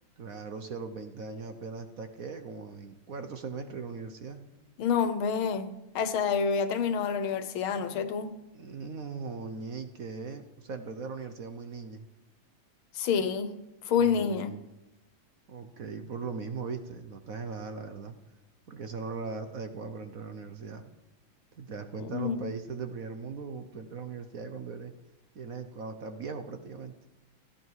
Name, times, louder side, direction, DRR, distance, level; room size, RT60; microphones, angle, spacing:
voice 1, 0.2-4.5 8.5-12.1 13.9-14.6 15.5-18.1 18.7-20.9 21.6-24.9 25.3-26.9, right 5 dB, 55° right, 8 dB, 1.1 m, -39 dB
voice 2, 4.8-8.3 12.9-13.6 13.9-14.5 22.1-22.4, left 6 dB, 85° left, 11 dB, 1.9 m, -28 dB
16.5 x 14.5 x 4.8 m, 0.94 s
omnidirectional pair, 2.2 m